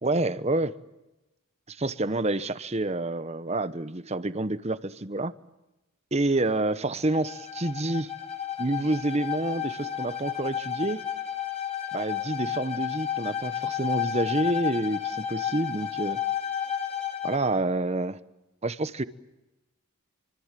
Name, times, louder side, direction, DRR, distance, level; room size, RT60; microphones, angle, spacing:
voice 1, 0.0-0.8 1.7-5.3 6.1-8.1 8.6-11.0 11.9-16.2 17.2-18.2 18.6-19.0, right 2 dB, 30° right, 1.0 m, -28 dB
Bowed string instrument, 7.0-17.5, left 9 dB, 30° left, 2.3 m, -32 dB
26.0 x 25.0 x 7.5 m
head